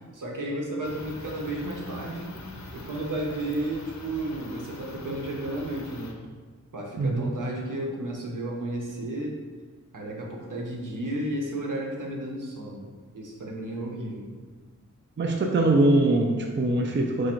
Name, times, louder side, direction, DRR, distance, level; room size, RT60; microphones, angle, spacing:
voice 1, 0.0-2.4 2.7-6.2 6.7-9.4 9.9-14.3, right 1 dB, 70° right, -1 dB, 1.0 m, -33 dB
sound 1, 0.8-6.1, left 2 dB, 55° left, 0.7 m, -44 dB
voice 2, 7.0-7.3 15.2-17.3, right 2 dB, 35° right, 2 dB, 0.5 m, -22 dB
4.8 x 2.5 x 4.4 m, 1.4 s
wide cardioid pair, 65°, 33 cm